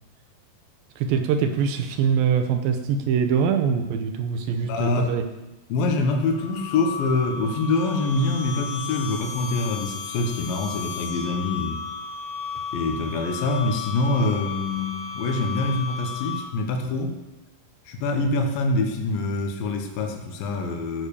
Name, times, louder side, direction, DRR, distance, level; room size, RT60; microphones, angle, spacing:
voice 1, 1.0-5.2, right 7 dB, 75° right, 7 dB, 2.2 m, -23 dB
voice 2, 4.6-5.1 5.7-11.8 12.7-17.1 17.9-21.1, left 2 dB, 70° left, 3 dB, 2.8 m, -25 dB
sound 1, 6.3-16.7, left 5 dB, 40° left, 2.4 m, -34 dB
13.5 x 6.6 x 6.9 m, 1.1 s
omnidirectional pair, 4.6 m